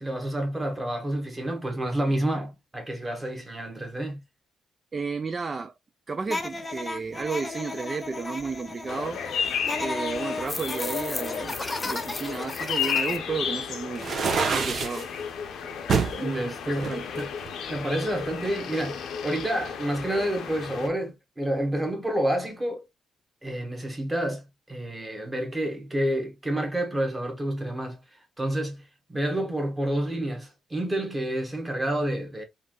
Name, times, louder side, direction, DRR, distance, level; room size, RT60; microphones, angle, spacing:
voice 1, 0.0-4.2 16.2-17.3 17.7-22.8 23.4-28.0 28.4-32.4, right 1 dB, 15° right, 1.3 m, -29 dB
voice 2, 4.9-5.7 6.1-9.2 9.8-14.1 14.5-15.1 16.2-17.1, right 4 dB, 35° right, 0.3 m, -33 dB
sound 1, 6.3-13.2, left 2 dB, 20° left, 0.5 m, -34 dB
sound 2, 8.9-20.9, left 7 dB, 70° left, 0.6 m, -33 dB
sound 3, 14.0-15.0 15.9-16.2 16.8-17.9, right 5 dB, 50° right, 0.7 m, -26 dB
3.2 x 2.5 x 2.3 m
cardioid pair, 90°, 0 cm